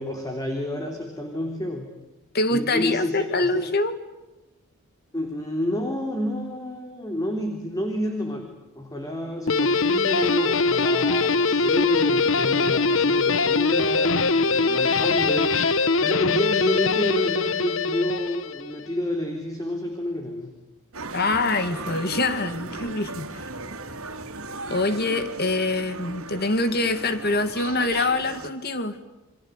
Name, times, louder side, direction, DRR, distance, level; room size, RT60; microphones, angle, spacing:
voice 1, 0.0-1.9 2.5-3.7 5.1-20.5, left 1 dB, 15° left, 3 dB, 3.5 m, -29 dB
voice 2, 2.3-3.9 21.1-23.3 24.7-29.0, left 2 dB, 45° left, 10 dB, 2.4 m, -24 dB
Guitar, 9.5-18.8, left 4 dB, 60° left, 1.1 m, -22 dB
sound 1, 20.9-28.5, right 2 dB, 70° right, 2.8 m, -36 dB
29.5 x 23.5 x 8.3 m, 1.1 s
head